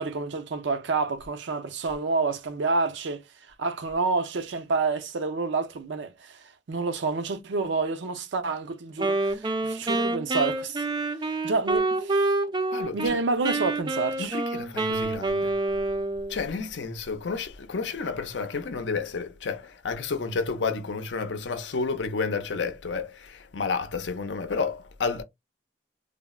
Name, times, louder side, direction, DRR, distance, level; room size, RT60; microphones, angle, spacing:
voice 1, 0.0-3.2 3.6-6.4 6.7-10.9 11.4-12.3 12.9-14.4, right 3 dB, 75° right, 0.5 m, -28 dB
Wind instrument woodwind instrument, 9.0-13.2 13.4-16.4, right 2 dB, 25° right, 0.4 m, -27 dB
voice 2, 12.7-13.1 14.2-15.5 16.3-25.2, left 4 dB, 75° left, 0.6 m, -31 dB
3.4 x 2.0 x 2.2 m
head